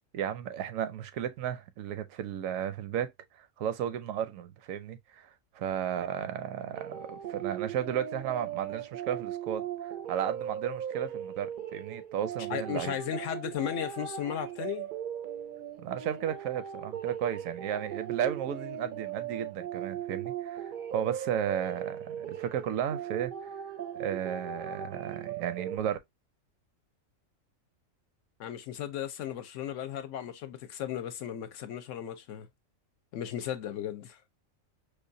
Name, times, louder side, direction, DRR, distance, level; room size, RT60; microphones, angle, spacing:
voice 1, 0.1-3.1 3.4-12.9 15.8-23.5 23.9-26.0, right 9 dB, 75° right, 0.9 m, -34 dB
sound 1, 6.7-25.8, right 9 dB, 60° right, 0.5 m, -38 dB
voice 2, 12.5-14.9 28.4-32.5 33.1-34.2, left 10 dB, 70° left, 0.9 m, -35 dB
4.9 x 2.2 x 2.6 m
omnidirectional pair, 1.4 m